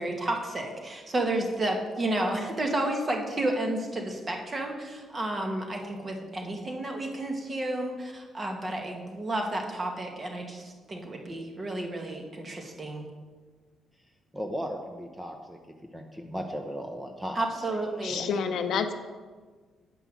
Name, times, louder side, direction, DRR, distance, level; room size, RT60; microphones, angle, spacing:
voice 1, 0.0-13.1 17.3-18.3, right 1 dB, 30° right, 2 dB, 1.6 m, -31 dB
voice 2, 14.3-15.6 15.9-17.4 18.1-18.2, equal, 10° right, 3 dB, 0.8 m, -36 dB
voice 3, 18.0-18.9, left 6 dB, 70° left, 9 dB, 0.6 m, -28 dB
8.2 x 5.4 x 6.3 m, 1.4 s
cardioid pair, 90°, 0 cm